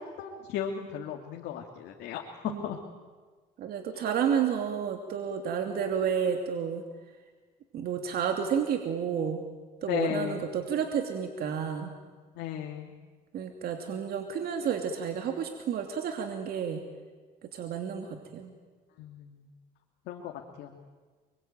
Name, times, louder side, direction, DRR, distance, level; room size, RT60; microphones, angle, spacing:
voice 1, 0.0-2.8 9.8-10.5 12.4-12.9 19.0-19.4 20.1-20.3 20.6-20.7, left 9 dB, 85° left, 1 dB, 2.5 m, -35 dB
voice 2, 3.6-6.8 7.7-9.4 9.8-11.9 13.3-16.8 17.5-18.5, right 7 dB, 65° right, 4 dB, 2.7 m, -31 dB
28.5 x 23.0 x 9.0 m, 1.4 s
cardioid pair, 110°, 17 cm